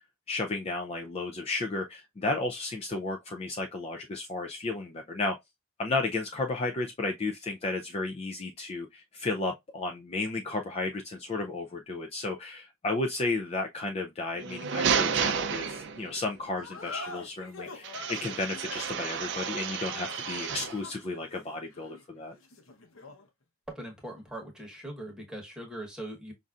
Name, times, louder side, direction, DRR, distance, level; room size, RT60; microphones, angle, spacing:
voice 1, 0.3-5.4 5.8-22.3, left 2 dB, 30° left, 0.4 m, -33 dB
sound 1, 14.3-16.3 17.8-20.8, right 6 dB, 55° right, 0.5 m, -31 dB
sound 2, 16.6-23.3, left 3 dB, 70° left, 0.9 m, -45 dB
voice 2, 23.7-26.3, right 1 dB, 5° right, 1.0 m, -41 dB
5.3 x 2.6 x 2.4 m
head